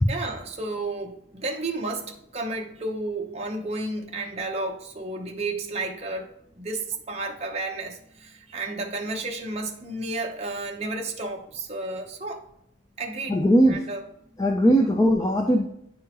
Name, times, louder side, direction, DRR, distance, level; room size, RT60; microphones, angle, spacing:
voice 1, 0.1-6.3 6.6-12.4 13.0-14.0, right 2 dB, 35° right, 0.8 m, -32 dB
voice 2, 13.3-13.8 14.4-15.7, equal, 20° left, 0.4 m, -19 dB
9.7 x 3.6 x 2.9 m
head